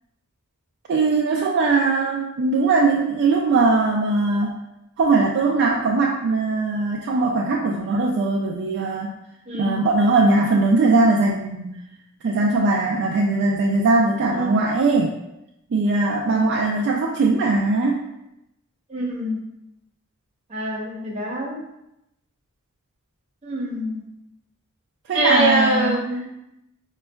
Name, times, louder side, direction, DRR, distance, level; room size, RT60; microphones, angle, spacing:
voice 1, 0.9-4.6 5.0-9.2 9.6-11.8 12.2-15.1 15.7-18.0 25.1-26.0, right 3 dB, 55° right, -1 dB, 0.3 m, -20 dB
voice 2, 9.5-9.8 14.3-14.5 16.3-16.4 18.9-19.4 20.5-21.6 23.4-24.0 25.1-26.3, right 1 dB, 30° right, -3 dB, 0.8 m, -24 dB
5.1 x 2.3 x 2.2 m, 0.86 s
head